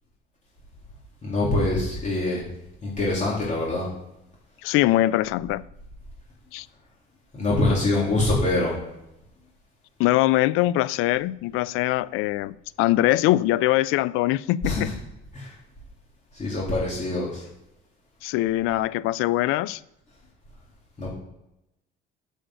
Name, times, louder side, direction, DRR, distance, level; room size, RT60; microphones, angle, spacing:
voice 1, 1.2-2.4 2.8-3.9 7.3-8.8 14.6-15.0 15.3-15.5 16.3-17.5 21.0-21.1, left 2 dB, 35° left, -5 dB, 3.6 m, -24 dB
voice 2, 4.6-5.6 6.5-6.7 10.0-14.9 18.2-19.8, left 16 dB, 80° left, 19 dB, 0.5 m, -22 dB
8.0 x 6.4 x 7.8 m, 0.87 s
cardioid pair, 100°, 21 cm